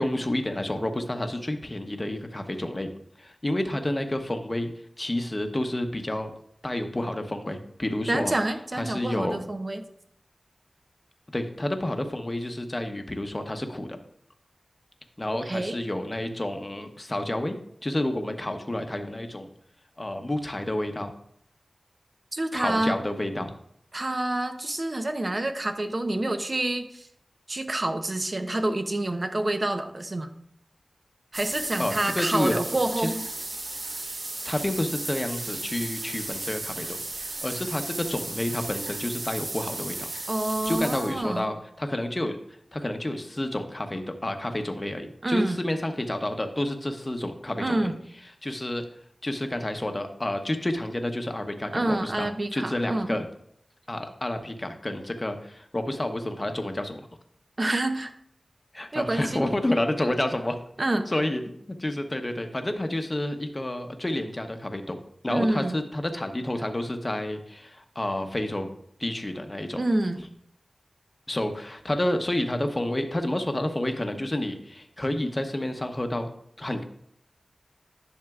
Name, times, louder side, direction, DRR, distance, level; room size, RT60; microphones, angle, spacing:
voice 1, 0.0-2.9 3.2-4.7 5.0-6.3 6.6-8.3 8.7-9.4 11.3-14.0 15.2-17.6 17.8-19.5 20.0-21.1 22.5-23.5 31.8-32.6 33.0-33.1 34.4-40.1 40.7-42.4 42.7-47.9 48.4-48.9 49.2-53.2 53.9-57.0 58.7-60.6 61.1-61.4 61.8-68.7 69.0-69.8 71.3-76.3 76.6-76.8, left 1 dB, 30° left, 6 dB, 0.9 m, -29 dB
voice 2, 8.1-9.8 15.3-15.8 22.3-23.0 23.9-27.1 27.5-30.3 31.3-33.2 40.3-41.5 45.2-45.6 47.6-48.0 51.7-53.2 57.6-58.1 58.9-59.4 60.8-61.1 65.3-65.8 69.8-70.2, right 1 dB, 40° right, 7 dB, 0.8 m, -27 dB
sound 1, 31.3-41.4, right 2 dB, 75° right, 1.2 m, -35 dB
10.5 x 6.4 x 2.4 m, 0.69 s
wide cardioid pair, 55°, 0 cm